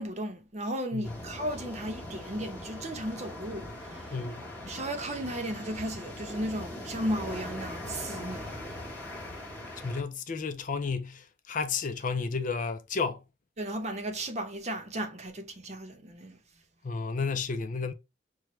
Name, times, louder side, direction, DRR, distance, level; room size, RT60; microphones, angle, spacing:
voice 1, 0.0-4.1 4.6-8.5 13.6-16.4, right 1 dB, 40° right, 0.8 m, -35 dB
sound 1, 1.0-10.0, left 1 dB, 10° left, 1.3 m, -41 dB
voice 2, 4.1-4.5 9.8-13.2 16.8-17.9, left 4 dB, 45° left, 0.5 m, -32 dB
5.9 x 2.3 x 3.1 m
head